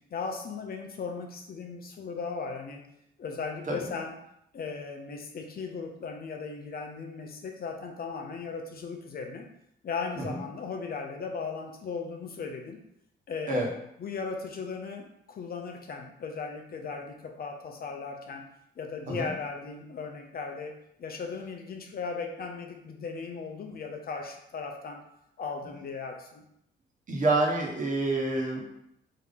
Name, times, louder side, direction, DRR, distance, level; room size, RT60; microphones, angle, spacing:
voice 1, 0.1-2.8 3.2-4.1 4.5-9.4 9.8-12.8 13.3-13.6 14.0-18.4 18.8-20.7 21.0-25.0 25.4-26.4, left 5 dB, 50° left, 3 dB, 0.7 m, -37 dB
voice 2, 27.1-28.6, right 2 dB, 40° right, -2 dB, 1.2 m, -27 dB
3.7 x 2.8 x 3.6 m, 0.76 s
cardioid pair, 90°, 20 cm